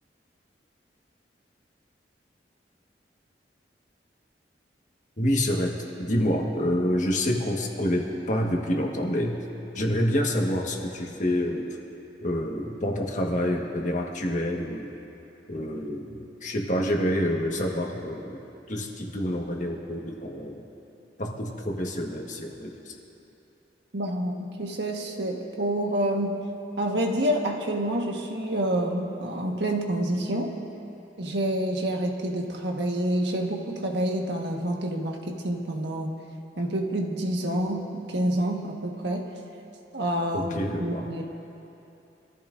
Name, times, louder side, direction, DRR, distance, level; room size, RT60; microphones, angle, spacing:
voice 1, 5.2-9.4 9.7-11.7 12.2-14.9 15.5-18.4 18.7-20.6 21.2-23.0 40.3-41.2, equal, 45° left, 0 dB, 1.5 m, -27 dB
voice 2, 23.9-26.4 26.8-30.6 31.2-36.1 36.6-39.3 39.9-41.2, right 1 dB, 85° right, 1 dB, 1.5 m, -28 dB
25.0 x 14.5 x 2.6 m, 3.0 s
head